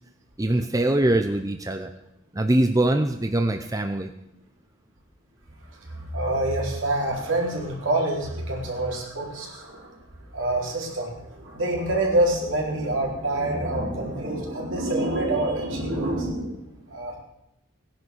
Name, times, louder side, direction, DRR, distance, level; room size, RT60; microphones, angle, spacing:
voice 1, 0.4-1.9 2.3-4.1, right 1 dB, 15° right, 6 dB, 0.7 m, -23 dB
voice 2, 5.8-10.0 10.3-17.2, right 1 dB, 70° right, -1 dB, 4.3 m, -26 dB
17.5 x 10.5 x 6.4 m, 0.84 s
head